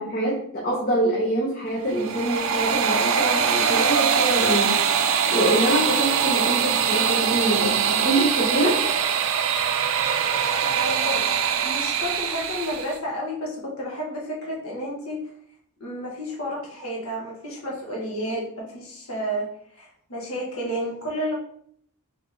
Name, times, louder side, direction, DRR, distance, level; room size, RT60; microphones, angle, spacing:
voice 1, 0.0-4.7 5.3-8.8, right 1 dB, 40° left, -5 dB, 1.0 m, -25 dB
sound 1, 1.8-13.0, right 7 dB, 65° right, 0.4 m, -23 dB
voice 2, 10.5-11.4 11.6-15.2 15.8-19.5 19.8-21.3, equal, 70° left, -3 dB, 1.1 m, -31 dB
4.0 x 3.5 x 3.4 m, 0.65 s
head